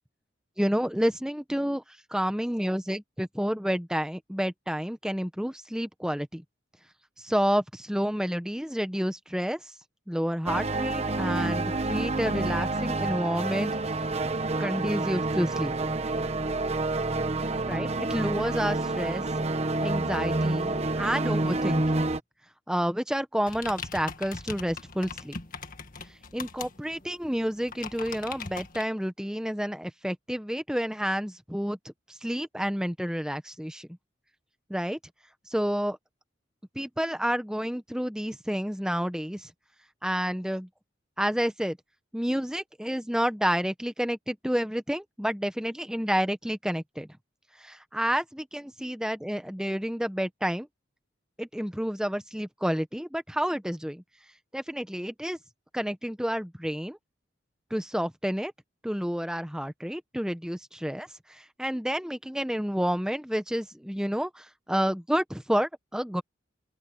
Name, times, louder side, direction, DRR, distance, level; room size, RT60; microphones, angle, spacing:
voice 1, 0.6-1.8 2.1-6.4 7.2-9.6 10.1-13.7 14.6-15.7 17.7-19.2 19.8-22.0 22.7-25.4 26.3-31.8 32.1-33.9 34.7-35.0 35.5-36.0 36.7-39.5 40.0-40.7 41.2-41.8 42.1-47.1 47.6-50.7 51.4-54.0 54.5-55.4 55.7-57.0 57.7-58.5 58.8-66.2, equal, 5° right, 1.0 m, -29 dB
sound 1, 10.5-22.2, right 2 dB, 35° right, 1.0 m, -28 dB
sound 2, 23.5-28.8, left 5 dB, 45° left, 1.8 m, -40 dB
open air
head